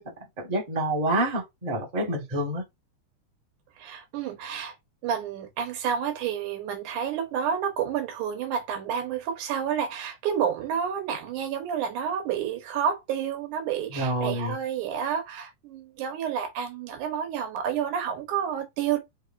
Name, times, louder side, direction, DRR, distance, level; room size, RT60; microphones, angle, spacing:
voice 1, 0.4-2.6 13.9-14.6, right 1 dB, 20° right, 1.0 m, -27 dB
voice 2, 3.8-4.8 5.0-19.0, right 8 dB, 90° right, 2.5 m, -30 dB
5.4 x 3.7 x 2.5 m
omnidirectional pair, 3.4 m